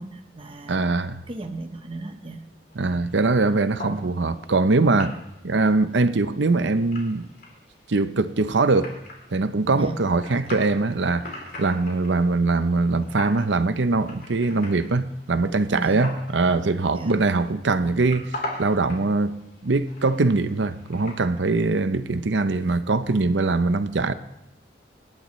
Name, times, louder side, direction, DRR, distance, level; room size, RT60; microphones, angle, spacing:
voice 1, 0.0-0.8 1.3-2.4 9.7-10.0 15.7-16.0 16.9-17.2, right 2 dB, 30° right, 0.9 m, -35 dB
voice 2, 0.7-1.2 2.8-5.1 5.4-7.3 7.9-8.9 9.3-11.3 11.6-19.4 19.6-24.1, right 3 dB, 75° right, 0.7 m, -22 dB
sound 1, 2.7-21.2, left 2 dB, 55° left, 3.8 m, -42 dB
25.5 x 11.0 x 3.2 m
head